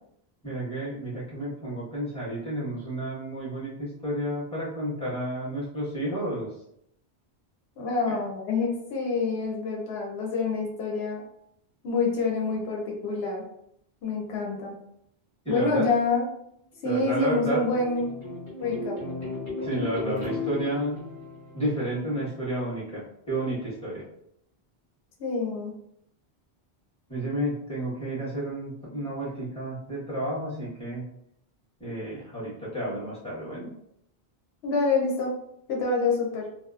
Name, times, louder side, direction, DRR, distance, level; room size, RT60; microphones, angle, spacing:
voice 1, 0.4-6.6 8.1-8.2 15.4-15.9 16.8-17.6 19.6-21.0 21.5-24.0 27.1-31.0 31.8-33.7, right 1 dB, 5° left, -10 dB, 1.0 m, -31 dB
voice 2, 7.8-11.2 11.8-13.4 14.0-14.7 15.5-16.2 16.8-18.1 18.6-19.0 25.2-25.7 34.6-35.3 35.7-36.5, left 3 dB, 80° left, -1 dB, 0.9 m, -27 dB
sound 1, 16.7-22.4, left 2 dB, 25° left, 1.4 m, -36 dB
2.7 x 2.0 x 2.3 m, 0.75 s
omnidirectional pair, 1.1 m